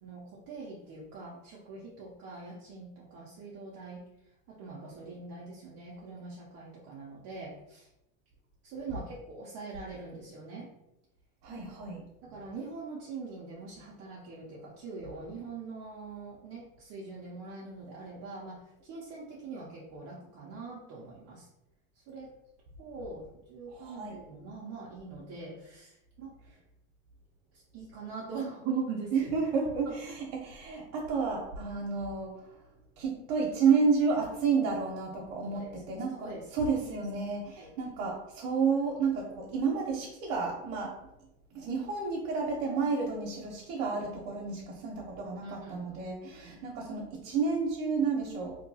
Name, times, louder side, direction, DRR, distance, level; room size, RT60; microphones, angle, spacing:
voice 1, 0.0-4.0 4.5-7.9 8.6-10.7 12.2-21.5 21.9-22.3 22.8-26.3 27.5-29.1 29.9-30.1 35.4-35.7 36.1-36.4 37.6-37.7 45.4-45.9 46.2-46.6, right 4 dB, 35° right, -4 dB, 0.5 m, -42 dB
voice 2, 11.4-12.0 23.8-24.2 29.1-32.4 33.0-41.0 41.5-48.6, right 5 dB, 70° right, -2 dB, 0.8 m, -31 dB
2.8 x 2.7 x 2.7 m, 0.88 s
supercardioid pair, 145°, 41 cm